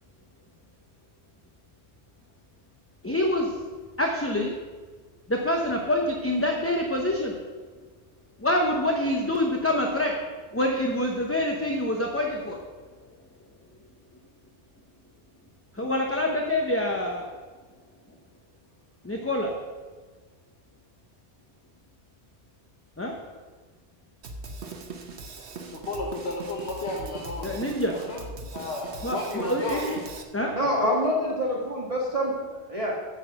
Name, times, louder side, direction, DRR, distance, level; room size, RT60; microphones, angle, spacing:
voice 1, 3.0-3.6 4.0-4.5 5.3-7.4 8.4-10.1 10.5-12.6 15.7-17.2 19.0-19.5 23.0-23.2 27.4-27.9 29.0-30.0 30.3-30.5, left 1 dB, 15° left, 1 dB, 0.8 m, -26 dB
Drum kit, 24.2-30.2, right 3 dB, 85° right, 1.3 m, -40 dB
voice 2, 25.7-27.6 27.9-28.2 28.5-29.9, left 2 dB, 75° left, -2 dB, 1.5 m, -33 dB
voice 3, 30.5-32.3 32.7-32.9, equal, 35° right, -3 dB, 1.7 m, -25 dB
8.8 x 7.5 x 6.5 m, 1.4 s
omnidirectional pair, 1.1 m